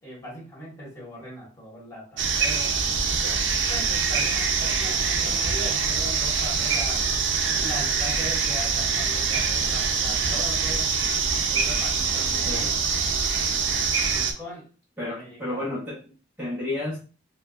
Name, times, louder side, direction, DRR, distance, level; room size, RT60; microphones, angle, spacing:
voice 1, 0.0-2.8 3.7-7.1 7.4-11.0 11.5-12.8 14.4-14.6 15.0-15.6, equal, 15° left, -5 dB, 1.7 m, -39 dB
sound 1, 2.2-14.3, right 5 dB, 75° right, 0.6 m, -24 dB
voice 2, 15.0-16.0 16.4-17.0, left 2 dB, 10° right, -8 dB, 0.8 m, -31 dB
4.7 x 2.2 x 2.5 m, 0.36 s
head